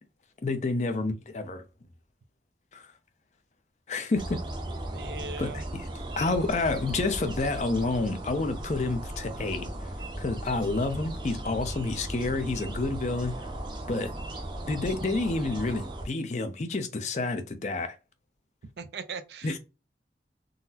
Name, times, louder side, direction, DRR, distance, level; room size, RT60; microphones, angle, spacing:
voice 1, 0.4-1.6 2.7-2.9 3.9-4.4 5.4-5.9 6.2-9.9 10.2-13.3 13.9-14.1 14.7-18.0 19.4-19.6, left 3 dB, 40° left, 0.5 m, -29 dB
sound 1, 4.1-16.1, right 1 dB, 25° right, 0.6 m, -37 dB
voice 2, 4.9-5.6 18.8-19.6, right 4 dB, 70° right, 0.4 m, -39 dB
3.8 x 2.0 x 2.7 m
head